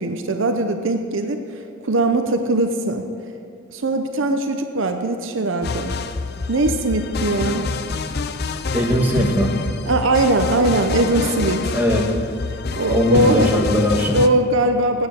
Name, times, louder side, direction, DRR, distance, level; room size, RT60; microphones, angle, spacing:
voice 1, 0.0-1.4 1.8-3.0 3.7-5.9 6.5-7.7 9.9-11.7 12.8-13.5 14.1-15.1, right 2 dB, 65° right, 6 dB, 0.8 m, -20 dB
sound 1, 5.6-14.3, left 4 dB, 50° left, 0.5 m, -27 dB
voice 2, 8.7-9.5 11.7-12.1 12.9-14.2, equal, 10° right, -1 dB, 1.4 m, -19 dB
9.5 x 9.2 x 8.4 m, 2.7 s
head